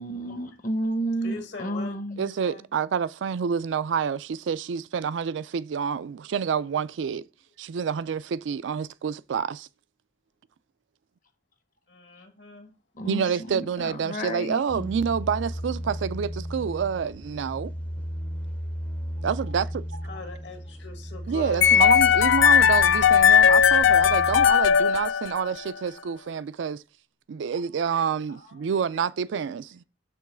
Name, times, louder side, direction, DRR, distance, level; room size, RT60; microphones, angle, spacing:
voice 1, 0.0-2.3 12.9-14.9, right 1 dB, 45° left, 0.8 m, -31 dB
voice 2, 1.2-2.0 2.2-2.7 11.9-12.7 19.9-21.9 25.8-25.9 28.3-28.7 29.0-29.1, left 3 dB, 70° left, 1.6 m, -41 dB
voice 3, 2.2-7.2 7.6-9.7 13.1-17.7 19.2-19.8 21.3-26.8 27.3-29.8, right 6 dB, 80° right, 0.4 m, -28 dB
sound 1, 14.7-24.5, equal, 10° left, 0.5 m, -35 dB
sound 2, 21.6-25.7, left 8 dB, 85° left, 0.3 m, -18 dB
6.8 x 3.1 x 6.0 m
head